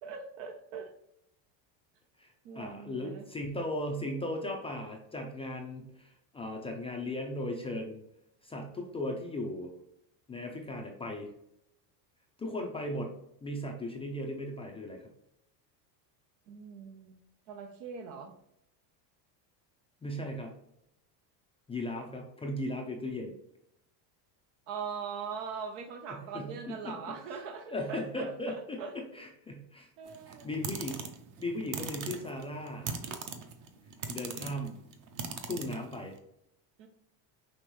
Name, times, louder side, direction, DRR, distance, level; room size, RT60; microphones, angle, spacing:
voice 1, 0.0-0.9 2.4-3.3 16.5-17.2 17.5-18.3 24.7-28.9 30.0-30.5 36.8-36.9, right 6 dB, 80° right, 5 dB, 0.9 m, -41 dB
voice 2, 2.2-8.0 8.4-9.7 10.3-11.3 12.4-13.1 13.4-15.1 20.0-20.5 21.7-23.3 26.1-27.0 27.7-29.9 30.3-31.1 31.4-32.9 34.1-34.8 35.4-36.2, left 1 dB, 15° left, 1 dB, 0.3 m, -37 dB
sound 1, 30.1-36.2, right 5 dB, 40° right, 0.7 m, -40 dB
5.4 x 3.0 x 3.0 m, 0.79 s
supercardioid pair, 120°, 49 cm